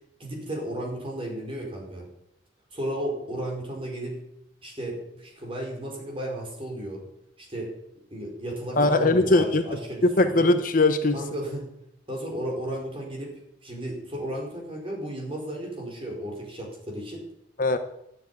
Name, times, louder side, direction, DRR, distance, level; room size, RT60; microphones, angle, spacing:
voice 1, 0.2-2.0 2.7-4.2 4.6-7.0 7.4-7.7 8.1-10.5 11.1-11.7 12.1-13.3 13.6-17.2, right 1 dB, 30° right, -1 dB, 4.7 m, -34 dB
voice 2, 8.8-9.6 10.0-11.2 17.6-17.8, left 2 dB, 45° left, 8 dB, 0.9 m, -20 dB
11.5 x 7.7 x 9.5 m, 0.78 s
head